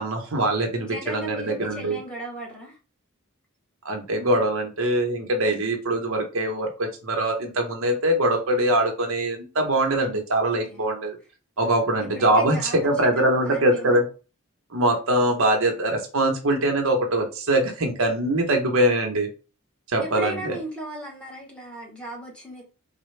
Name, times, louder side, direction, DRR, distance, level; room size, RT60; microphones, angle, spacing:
voice 1, 0.0-2.0 3.8-11.2 11.6-14.0 14.7-19.3 19.9-20.6, right 1 dB, 70° right, 0.9 m, -23 dB
voice 2, 0.8-2.8 10.7-10.9 11.6-12.9 13.2-14.0 20.0-22.6, right 1 dB, 5° left, 0.9 m, -37 dB
4.0 x 2.2 x 3.2 m
head